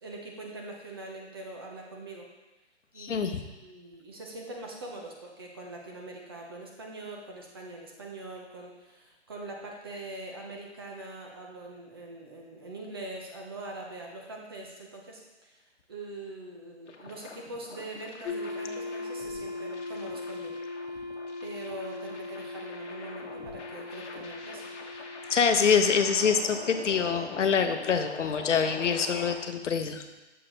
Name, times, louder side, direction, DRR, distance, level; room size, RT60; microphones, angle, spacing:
voice 1, 0.0-2.2 2.9-15.6 15.9-20.6 21.4-24.7, right 2 dB, 20° right, 0 dB, 0.5 m, -43 dB
voice 2, 3.0-3.4 25.3-30.0, left 6 dB, 90° left, 7 dB, 0.7 m, -25 dB
sound 1, 16.9-29.3, left 4 dB, 70° left, 1.0 m, -44 dB
sound 2, 18.2-29.0, left 3 dB, 15° left, 0.9 m, -40 dB
6.6 x 4.3 x 3.8 m, 1.1 s
hypercardioid pair, 155°, 36 cm